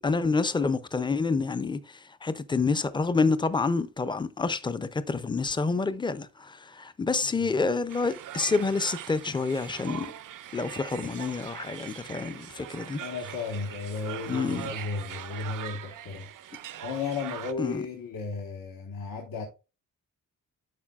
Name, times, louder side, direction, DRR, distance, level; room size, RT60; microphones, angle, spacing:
voice 1, 0.0-1.8 2.2-10.1 10.5-13.0 14.3-14.7 17.6-17.8, left 4 dB, 15° left, 0.3 m, -28 dB
sound 1, 7.9-17.5, right 11 dB, 70° right, 0.5 m, -41 dB
voice 2, 12.9-16.3 16.8-19.5, left 4 dB, 90° left, 1.3 m, -34 dB
11.5 x 4.6 x 2.3 m
wide cardioid pair, 175°, 34 cm